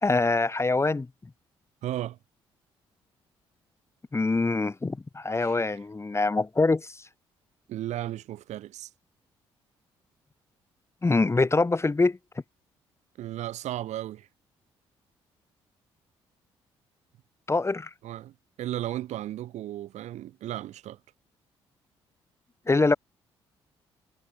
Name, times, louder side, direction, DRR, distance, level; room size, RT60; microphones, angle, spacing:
voice 1, 0.0-1.1 4.1-7.0 11.0-12.2 17.5-17.9 22.7-22.9, left 3 dB, 20° left, 1.4 m, -24 dB
voice 2, 1.8-2.2 5.4-5.7 7.7-8.9 13.2-14.3 18.0-21.0, right 13 dB, 60° right, 6.7 m, -35 dB
figure-of-eight pair, 45°, 14 cm